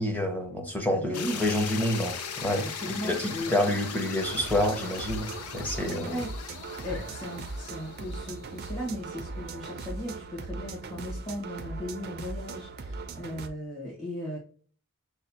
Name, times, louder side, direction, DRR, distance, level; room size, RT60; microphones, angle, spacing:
voice 1, 0.0-2.7 3.0-6.2, left 1 dB, 5° left, 0.8 m, -28 dB
voice 2, 0.9-1.4 2.6-3.5 5.8-6.3 6.8-14.4, equal, 35° left, 1.5 m, -37 dB
sound 1, 1.1-9.1, left 6 dB, 90° left, 0.6 m, -39 dB
sound 2, 4.2-13.5, right 3 dB, 45° right, 0.4 m, -39 dB
6.4 x 2.3 x 2.7 m
head